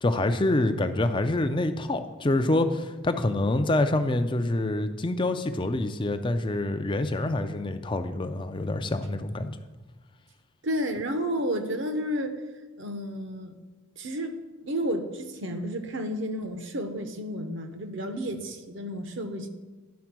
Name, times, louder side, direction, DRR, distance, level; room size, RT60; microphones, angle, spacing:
voice 1, 0.0-9.6, left 2 dB, 20° left, 9 dB, 0.4 m, -26 dB
voice 2, 10.6-12.4 12.8-13.5 14.0-19.5, equal, 55° right, 7 dB, 0.8 m, -31 dB
10.5 x 4.3 x 6.0 m, 1.2 s
head